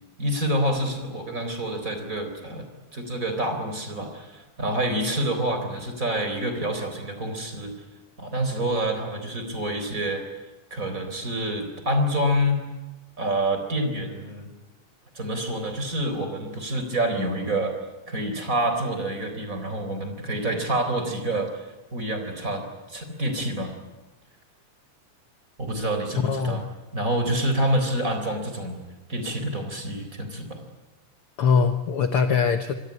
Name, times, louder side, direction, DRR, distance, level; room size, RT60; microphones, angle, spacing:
voice 1, 0.2-7.7 8.2-10.2 10.7-12.6 13.2-14.5 15.1-17.7 18.1-23.7 25.6-26.6 26.9-28.8 29.1-30.6, right 1 dB, 25° right, 6 dB, 4.1 m, -27 dB
voice 2, 26.2-26.6 31.4-32.7, left 6 dB, 60° left, 8 dB, 1.6 m, -22 dB
27.0 x 21.5 x 9.6 m, 1.1 s
omnidirectional pair, 3.7 m